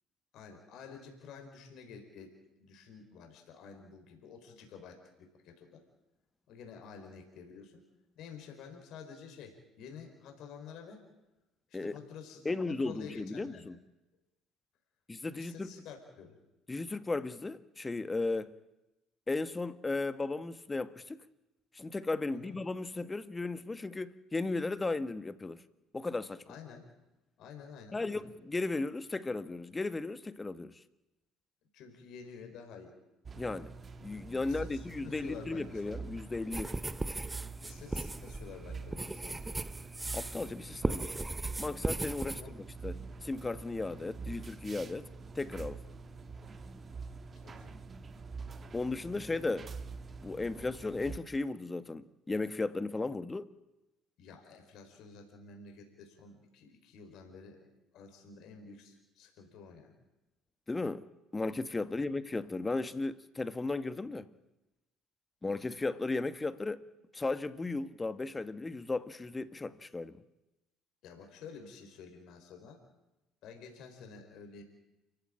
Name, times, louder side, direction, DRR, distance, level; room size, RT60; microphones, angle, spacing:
voice 1, 0.3-5.8 6.5-7.8 8.2-11.0 11.7-13.7 15.3-16.4 22.3-22.6 26.5-26.9 27.4-28.3 31.7-32.9 34.4-36.0 37.6-39.6 40.7-41.3 42.2-42.6 47.4-47.8 54.2-57.7 57.9-59.9 61.9-62.1 71.0-72.8 73.4-74.6, left 6 dB, 60° left, 4.6 m, -50 dB
voice 2, 12.4-13.8 15.1-15.7 16.7-18.5 19.3-21.2 21.7-25.6 25.9-26.4 27.9-30.7 33.4-33.7 34.0-36.8 40.1-41.2 41.6-45.1 45.3-45.8 48.7-49.7 50.2-53.5 60.7-61.1 61.3-64.3 65.4-66.8 67.1-70.2, left 3 dB, 20° left, 1.5 m, -35 dB
sound 1, 33.3-51.2, right 4 dB, 35° right, 1.6 m, -46 dB
sound 2, 36.5-40.5 40.8-42.4, right 2 dB, 15° right, 0.9 m, -37 dB
29.5 x 15.0 x 8.8 m
hypercardioid pair, 55°, 0 cm